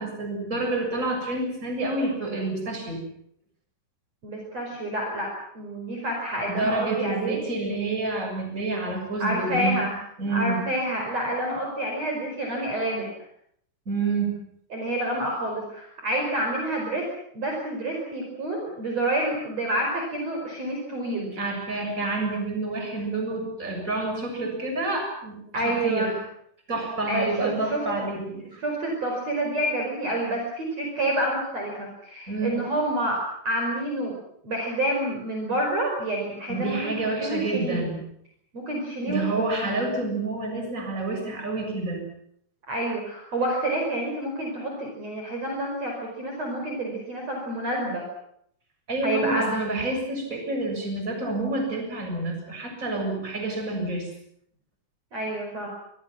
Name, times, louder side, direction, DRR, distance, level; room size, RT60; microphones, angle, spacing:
voice 1, 0.0-3.0 6.6-9.9 10.2-10.6 13.9-14.4 21.3-26.1 26.7-28.6 32.3-32.6 36.5-38.0 39.1-42.0 48.9-54.1, right 2 dB, 20° right, 3 dB, 7.2 m, -28 dB
voice 2, 4.2-5.3 5.5-7.4 9.2-9.9 10.3-13.1 14.7-17.1 17.3-21.4 25.5-26.1 27.1-27.8 28.6-34.2 34.4-37.9 38.5-39.2 39.6-39.9 42.7-48.0 49.0-49.5 55.1-55.7, right 1 dB, 40° right, 0 dB, 6.0 m, -28 dB
27.5 x 23.5 x 6.1 m, 0.70 s
omnidirectional pair, 4.8 m